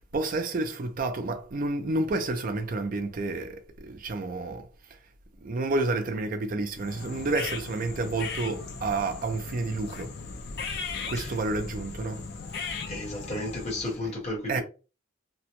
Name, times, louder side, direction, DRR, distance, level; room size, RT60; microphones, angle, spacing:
voice 1, 0.1-4.7 5.4-10.1 11.1-12.2 14.0-14.1 14.5-14.6, right 2 dB, 40° right, 0.4 m, -30 dB
sound 1, 6.8-14.0, left 4 dB, 50° left, 0.4 m, -37 dB
voice 2, 12.9-14.6, left 1 dB, 30° left, 1.1 m, -33 dB
2.9 x 2.1 x 2.9 m
head